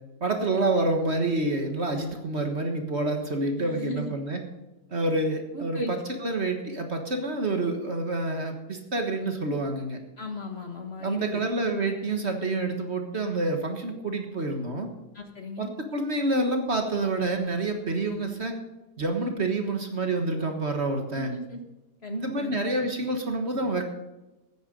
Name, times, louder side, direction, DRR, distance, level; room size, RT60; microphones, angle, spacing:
voice 1, 0.2-4.4 4.9-10.0 11.0-14.9 15.6-18.6 19.0-21.3 22.1-23.8, right 2 dB, 40° right, 4 dB, 1.6 m, -28 dB
voice 2, 3.6-4.1 5.5-5.9 10.2-11.4 15.1-15.7 21.1-21.6 22.0-22.5, left 1 dB, 40° left, 4 dB, 1.5 m, -36 dB
14.0 x 9.7 x 5.2 m, 1.0 s
omnidirectional pair, 1.8 m